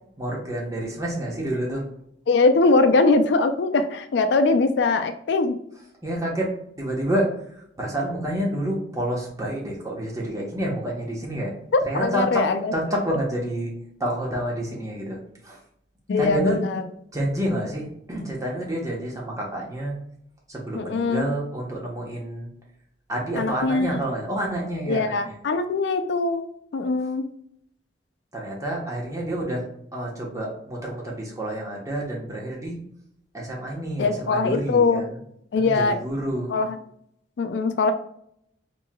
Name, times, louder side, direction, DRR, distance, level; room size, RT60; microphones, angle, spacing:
voice 1, 0.2-1.8 6.0-6.5 6.8-7.3 7.8-11.5 11.9-12.4 12.7-13.7 14.0-15.2 15.4-15.6 16.2-16.5 17.1-20.0 20.5-22.5 23.1-25.4 28.3-29.6 29.9-32.8 33.3-35.1 35.5-36.6, right 1 dB, 20° right, -2 dB, 1.0 m, -28 dB
voice 2, 2.3-5.6 11.7-13.0 16.1-16.8 20.7-21.3 23.4-24.1 24.9-26.4 26.7-27.2 34.0-35.1 35.5-36.0 36.5-36.8 37.4-37.9, left 3 dB, 70° left, 8 dB, 0.4 m, -22 dB
4.4 x 3.1 x 2.2 m, 0.71 s
head